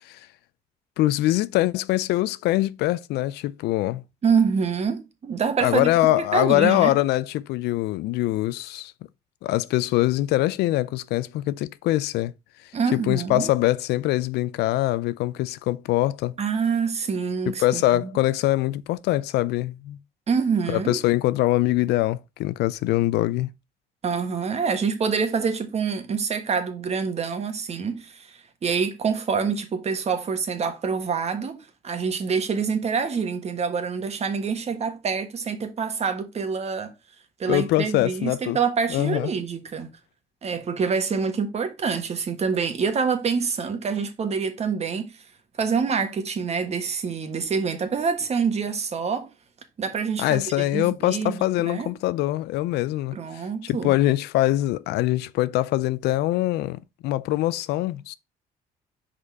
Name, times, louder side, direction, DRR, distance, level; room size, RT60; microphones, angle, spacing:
voice 1, 1.0-4.0 5.6-8.9 9.4-12.3 12.9-16.4 17.6-20.0 20.7-23.5 37.5-38.6 38.9-39.3 50.2-53.2 53.6-58.1, left 16 dB, 80° left, 0.4 m, -23 dB
voice 2, 4.2-6.9 12.7-13.5 16.4-17.8 20.3-21.0 24.0-36.9 37.4-39.9 40.4-45.1 45.6-49.3 49.8-51.9 53.1-54.0, right 5 dB, 40° right, 1.4 m, -26 dB
5.1 x 4.2 x 4.7 m
cardioid pair, 110°, 17 cm